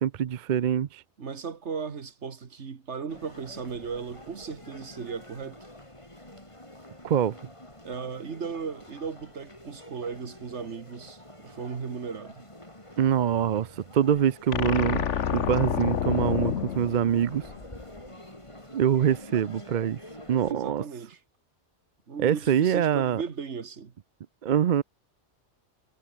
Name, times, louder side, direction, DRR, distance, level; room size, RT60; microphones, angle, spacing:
voice 1, 0.0-1.0 7.0-7.4 13.0-15.1 15.3-17.4 18.7-20.0 20.3-20.8 22.2-23.2 24.4-24.8, right 9 dB, 50° right, 0.6 m, -24 dB
voice 2, 1.2-5.6 7.8-12.5 20.5-21.2 22.1-23.9, right 5 dB, 75° right, 1.9 m, -36 dB
sound 1, 3.1-20.5, left 1 dB, 25° left, 5.1 m, -48 dB
sound 2, 14.5-17.8, left 8 dB, 85° left, 1.3 m, -28 dB
omnidirectional pair, 1.2 m